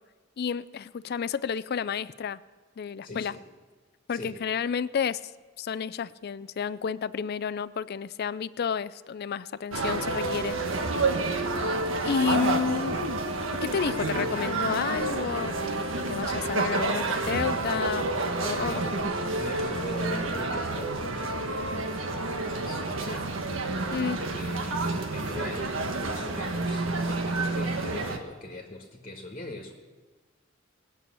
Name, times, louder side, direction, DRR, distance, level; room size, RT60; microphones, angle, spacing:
voice 1, 0.4-2.4 2.8-3.4 4.1-5.2 5.6-10.6 12.0-13.0 13.6-18.1 18.4-19.1 23.9-24.2, left 6 dB, 55° left, 17 dB, 0.4 m, -31 dB
voice 2, 3.0-3.4 4.1-4.4 18.4-19.1 19.4-23.3 23.8-29.7, left 1 dB, 35° left, 1 dB, 1.6 m, -41 dB
sound 1, 9.7-28.2, right 2 dB, 90° right, 1.4 m, -29 dB
20.0 x 7.0 x 8.5 m, 1.4 s
head